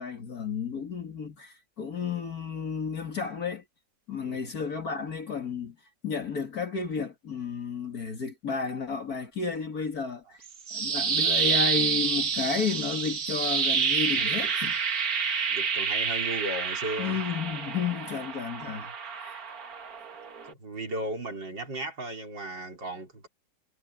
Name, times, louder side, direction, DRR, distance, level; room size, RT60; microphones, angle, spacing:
voice 1, 0.0-3.6 4.1-5.8 6.0-10.4 10.7-14.8 17.0-19.5, left 5 dB, 55° left, 2.5 m, -32 dB
sound 1, 10.4-20.5, right 6 dB, 55° right, 2.0 m, -28 dB
voice 2, 15.5-17.2 20.4-23.3, right 1 dB, 80° right, 5.4 m, -35 dB
omnidirectional pair, 1.9 m